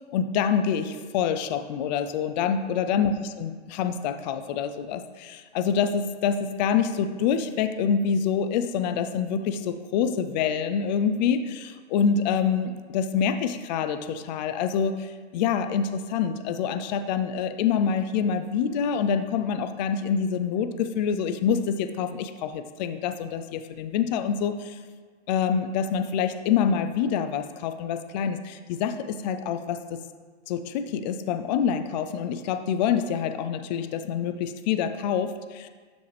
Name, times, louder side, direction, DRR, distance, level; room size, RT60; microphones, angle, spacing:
voice 1, 0.1-3.1 3.4-24.8 25.3-30.0 30.5-35.7, left 7 dB, 40° left, 8 dB, 0.5 m, -26 dB
12.0 x 5.2 x 3.3 m, 1.5 s
hypercardioid pair, 150°, 33 cm